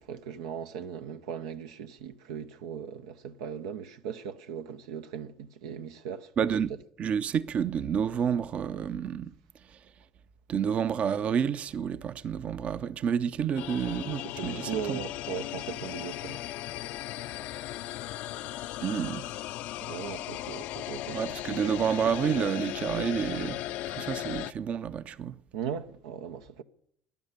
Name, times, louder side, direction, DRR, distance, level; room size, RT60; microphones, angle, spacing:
voice 1, 0.0-6.3 14.2-16.4 19.8-21.4 25.5-26.6, right 7 dB, 85° right, 0.7 m, -38 dB
voice 2, 6.4-6.7 7.0-9.3 9.7-9.8 10.5-15.0 18.8-19.2 21.1-23.6 23.9-25.4, right 7 dB, 50° right, 0.7 m, -29 dB
sound 1, 13.6-24.5, left 14 dB, 70° left, 0.5 m, -37 dB
12.5 x 10.5 x 9.7 m
hypercardioid pair, 75°, 3 cm